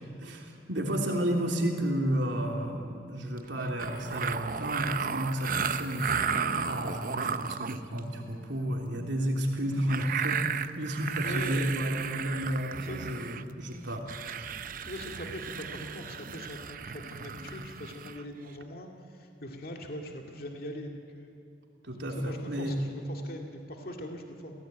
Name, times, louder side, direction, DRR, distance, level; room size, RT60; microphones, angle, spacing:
voice 1, 0.2-6.2 6.6-14.5 21.8-22.7, equal, 85° right, 1 dB, 3.2 m, -32 dB
sound 1, 3.4-3.5 3.8-8.0 9.9-13.4 13.7-13.8 14.1-18.2, right 6 dB, 50° right, 0.8 m, -34 dB
voice 2, 11.2-11.8 12.8-13.1 14.9-21.3 22.1-24.5, left 1 dB, 55° left, 2 dB, 2.1 m, -41 dB
29.5 x 16.5 x 9.1 m, 2.7 s
head